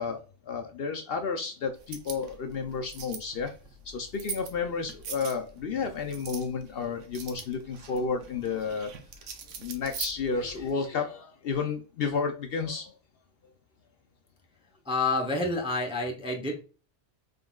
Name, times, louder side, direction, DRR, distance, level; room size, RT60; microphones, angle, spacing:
voice 1, 0.0-3.5 3.8-9.0 9.6-12.9, left 5 dB, 60° left, 5 dB, 0.7 m, -32 dB
sound 1, 1.8-10.7, right 6 dB, 85° right, 1.0 m, -43 dB
voice 2, 14.9-16.6, left 2 dB, 5° right, 1 dB, 0.5 m, -28 dB
3.7 x 3.6 x 2.3 m, 0.35 s
omnidirectional pair, 1.2 m